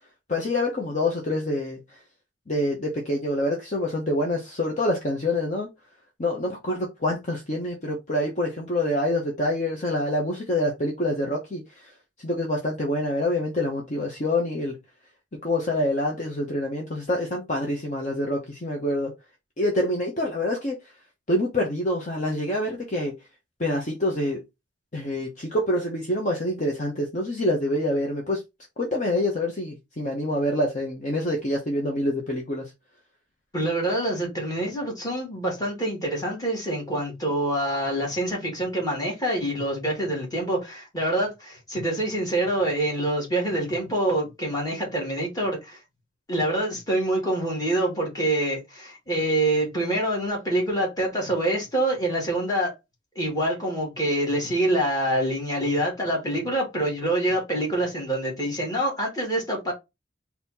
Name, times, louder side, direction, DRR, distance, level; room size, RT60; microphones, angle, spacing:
voice 1, 0.3-2.0 2.5-5.7 6.2-14.8 15.4-19.1 19.6-20.9 21.3-23.2 23.6-24.4 24.9-28.4 28.8-32.7, left 1 dB, 40° left, 1.0 m, -26 dB
voice 2, 33.5-45.8 46.3-52.7 53.2-59.7, right 1 dB, 20° left, 2.2 m, -26 dB
4.1 x 2.9 x 4.2 m
head